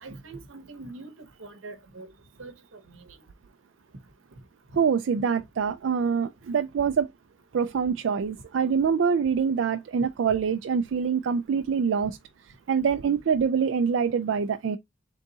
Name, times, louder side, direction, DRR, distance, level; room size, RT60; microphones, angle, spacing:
voice 1, 0.0-2.1 2.4-3.2, right 3 dB, 85° right, 0.9 m, -43 dB
voice 2, 4.8-7.1 7.5-12.2 12.7-14.8, right 6 dB, 65° right, 0.3 m, -25 dB
3.9 x 3.5 x 2.7 m
head